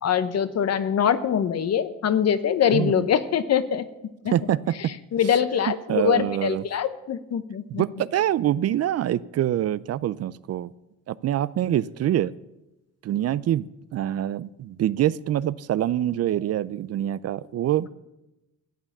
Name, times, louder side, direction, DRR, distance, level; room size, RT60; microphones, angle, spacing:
voice 1, 0.0-3.8 4.2-4.3 4.8-7.8, left 8 dB, 55° left, 13 dB, 1.0 m, -23 dB
voice 2, 2.7-3.0 4.3-4.9 5.9-6.6 7.7-10.7 11.1-12.3 13.0-17.9, right 12 dB, 55° right, 19 dB, 0.5 m, -25 dB
13.0 x 9.0 x 7.3 m, 0.95 s
cardioid pair, 90°, 30 cm